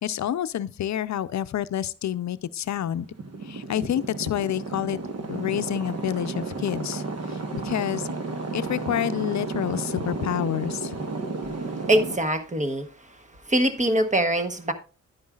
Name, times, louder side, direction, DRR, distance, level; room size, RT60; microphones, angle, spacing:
voice 1, 0.0-3.1 3.4-5.0 5.3-7.0 7.3-8.1 8.5-11.0, left 11 dB, 65° left, 0.5 m, -28 dB
sound 1, 2.8-12.2, right 3 dB, 55° right, 1.2 m, -32 dB
voice 2, 11.9-12.9 13.5-14.7, right 1 dB, 25° right, 1.0 m, -23 dB
10.5 x 9.5 x 2.4 m
wide cardioid pair, 150°, 30 cm